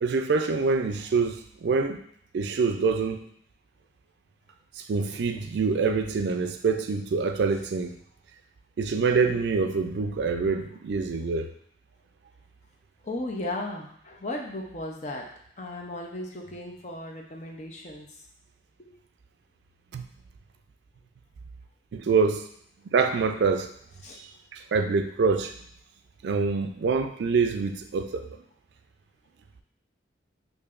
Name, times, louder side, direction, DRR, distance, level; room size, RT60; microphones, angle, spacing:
voice 1, 0.0-2.0 2.3-3.2 4.8-8.0 8.8-11.5 19.9-20.0 21.9-22.5 22.9-23.7 24.5-25.5 26.2-28.3, right 4 dB, 65° right, 7 dB, 0.3 m, -25 dB
voice 2, 13.0-15.2 15.6-18.1 24.0-24.2, left 1 dB, 40° left, 1 dB, 0.5 m, -35 dB
4.7 x 2.6 x 2.5 m, 0.66 s
head